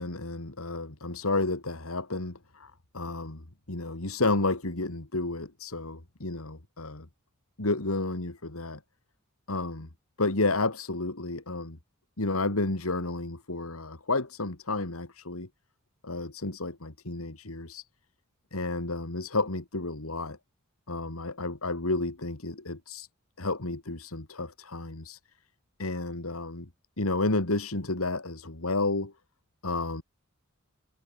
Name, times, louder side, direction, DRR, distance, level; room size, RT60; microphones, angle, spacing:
voice 1, 0.0-3.4 3.7-7.1 7.6-8.8 9.5-9.9 10.2-11.8 12.2-15.5 16.0-17.8 18.5-20.4 20.9-23.1 23.4-25.2 25.8-26.7 27.0-29.1 29.6-30.0, left 2 dB, 90° left, 2.6 m, -31 dB
head